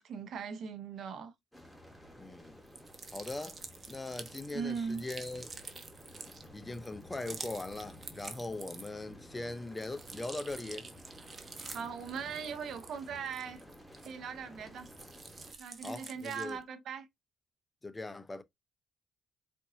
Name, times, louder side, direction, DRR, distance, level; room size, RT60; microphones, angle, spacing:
voice 1, 0.0-1.3 4.5-5.0 11.7-13.6 14.0-14.9 15.6-17.1, right 6 dB, 70° right, 1.0 m, -39 dB
sound 1, 1.5-15.5, equal, ahead, 1.4 m, -53 dB
voice 2, 2.2-2.6 3.1-3.6 3.9-5.7 6.5-10.9 15.8-16.6 17.8-18.4, left 2 dB, 20° left, 0.6 m, -40 dB
sound 2, 2.7-9.1 9.5-14.4 14.8-16.6, right 4 dB, 35° right, 0.9 m, -48 dB
4.4 x 2.5 x 2.7 m
cardioid pair, 90°, 0 cm